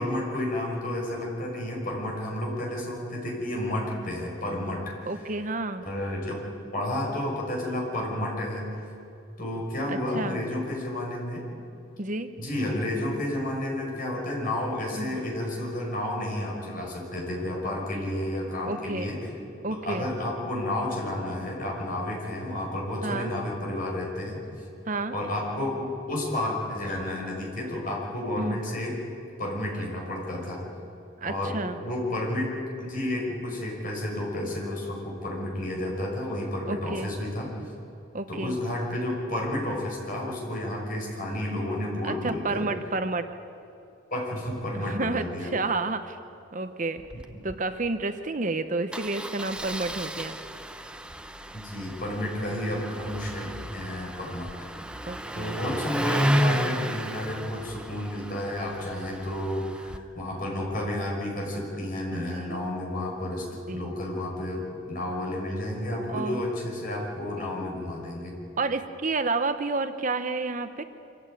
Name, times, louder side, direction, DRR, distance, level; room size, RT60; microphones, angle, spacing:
voice 1, 0.0-5.3 5.8-6.4 6.7-8.8 9.4-11.5 12.4-19.3 19.7-24.4 25.1-28.9 29.4-30.6 31.2-32.5 32.8-37.5 38.3-42.7 44.1-45.5 47.1-47.4 51.5-54.8 55.3-68.4, left 1 dB, 45° left, -2 dB, 5.9 m, -31 dB
voice 2, 5.1-5.8 9.9-10.4 12.0-12.3 14.9-15.2 18.7-19.1 19.6-20.1 23.0-23.3 24.9-25.2 28.4-28.6 31.2-31.8 36.7-37.1 38.1-38.6 42.0-43.2 44.7-46.2 46.5-47.0 47.4-50.4 55.0-55.6 62.4-62.7 63.7-63.9 66.1-66.4 68.6-70.8, right 3 dB, 40° right, 9 dB, 0.9 m, -30 dB
Engine starting, 47.0-47.2 47.5-47.6 47.8-48.0 48.9-60.0, equal, 5° right, 0.7 m, -32 dB
25.0 x 15.0 x 9.1 m, 2.6 s
head